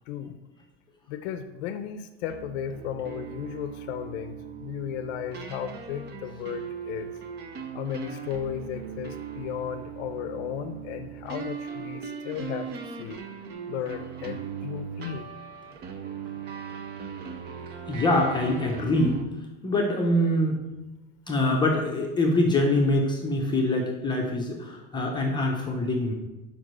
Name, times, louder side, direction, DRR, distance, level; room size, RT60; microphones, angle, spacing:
voice 1, 0.1-0.4 1.1-7.1 7.7-12.7 13.0-13.2 13.7-15.3, left 9 dB, 70° left, 9 dB, 0.6 m, -35 dB
sound 1, 2.3-19.2, right 7 dB, 30° right, 0.6 m, -39 dB
voice 2, 17.9-19.2 19.6-20.6 21.3-26.1, left 1 dB, 15° left, -1 dB, 0.8 m, -24 dB
5.2 x 4.9 x 6.1 m, 1.1 s
supercardioid pair, 155°, 35 cm